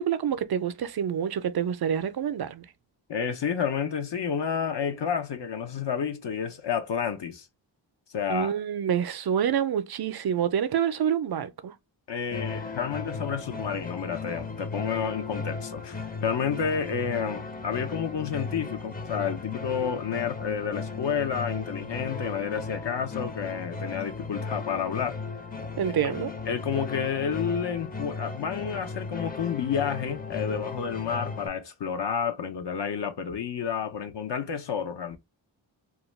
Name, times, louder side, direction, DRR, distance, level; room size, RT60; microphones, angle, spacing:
voice 1, 0.0-2.7 8.3-11.7 25.8-26.3, right 8 dB, 55° right, 0.5 m, -27 dB
voice 2, 3.1-7.5 8.1-8.5 12.1-25.2 26.0-26.1 26.5-35.2, left 7 dB, 60° left, 0.6 m, -30 dB
sound 1, 12.3-31.5, left 4 dB, 20° left, 0.5 m, -36 dB
2.3 x 2.2 x 3.1 m
cardioid pair, 50°, 48 cm